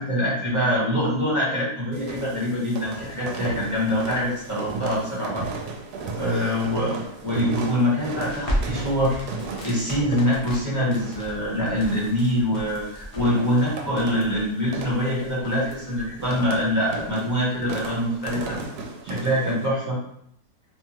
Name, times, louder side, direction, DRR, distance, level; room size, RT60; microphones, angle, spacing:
voice 1, 0.0-5.4 6.2-7.0 7.2-9.2 9.6-18.6 19.0-20.0, equal, 15° right, -7 dB, 0.9 m, -24 dB
sound 1, 1.9-19.7, right 4 dB, 80° right, 1.1 m, -36 dB
Crackle, 8.1-18.6, equal, 45° left, 0.4 m, -36 dB
2.8 x 2.3 x 3.0 m, 0.70 s
omnidirectional pair, 1.7 m